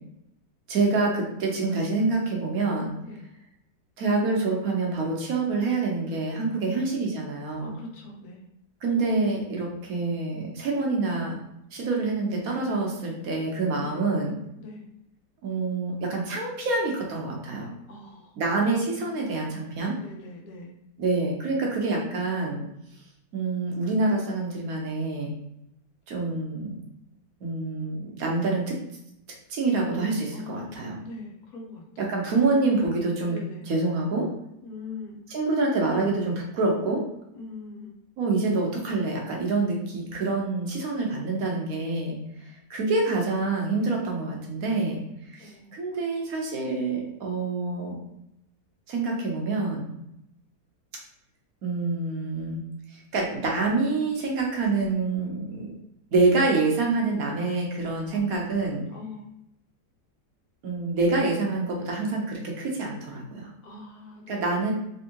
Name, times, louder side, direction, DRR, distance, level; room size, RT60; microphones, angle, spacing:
voice 1, 0.7-3.0 4.0-7.8 8.8-11.4 11.7-14.3 15.4-17.7 18.4-19.9 21.0-22.6 23.3-25.3 26.1-26.8 27.4-28.8 29.5-31.0 32.0-33.4 33.7-34.3 35.3-37.0 38.2-45.0 45.3-48.0 48.9-49.9 51.6-52.6 53.1-55.7 56.1-58.9 60.6-63.5 64.3-64.7, right 3 dB, 60° right, 0 dB, 1.2 m, -26 dB
voice 2, 6.6-6.9 7.6-8.5 13.8-14.1 14.6-14.9 17.9-18.4 19.2-19.5 20.0-20.7 30.3-30.7 31.0-32.1 33.3-33.7 34.6-35.2 37.3-37.9 45.4-46.2 58.9-59.3 63.6-64.7, left 3 dB, 65° left, 1 dB, 1.3 m, -43 dB
3.5 x 3.0 x 2.9 m, 0.83 s
omnidirectional pair, 1.8 m